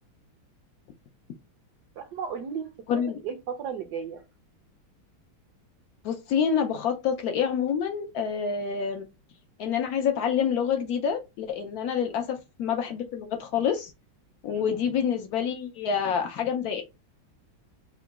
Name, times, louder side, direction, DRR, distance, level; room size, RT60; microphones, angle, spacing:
voice 1, 2.0-4.2 12.0-12.2 14.5-14.6, right 7 dB, 75° right, 0.9 m, -35 dB
voice 2, 2.9-3.2 6.0-9.0 9.6-13.9 14.4-16.8, left 7 dB, 90° left, 0.8 m, -27 dB
3.8 x 2.2 x 3.5 m
omnidirectional pair, 2.2 m